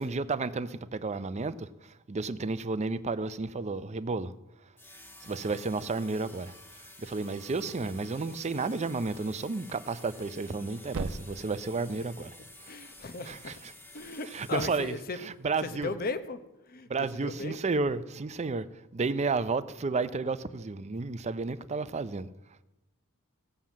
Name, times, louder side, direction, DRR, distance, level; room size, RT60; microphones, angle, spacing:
voice 1, 0.0-4.3 5.2-6.5 7.0-12.3 13.3-13.5 14.3-14.9 15.2-15.9 16.9-18.7 18.9-22.3, right 3 dB, 30° right, 0.5 m, -32 dB
sound 1, 4.8-15.3, left 1 dB, 10° left, 1.6 m, -51 dB
Thump thud, 10.0-14.1, right 3 dB, 75° right, 0.6 m, -44 dB
voice 2, 12.7-13.6 13.9-15.2 15.6-16.4 16.7-17.6, left 3 dB, 40° left, 0.8 m, -37 dB
16.0 x 7.6 x 7.2 m
head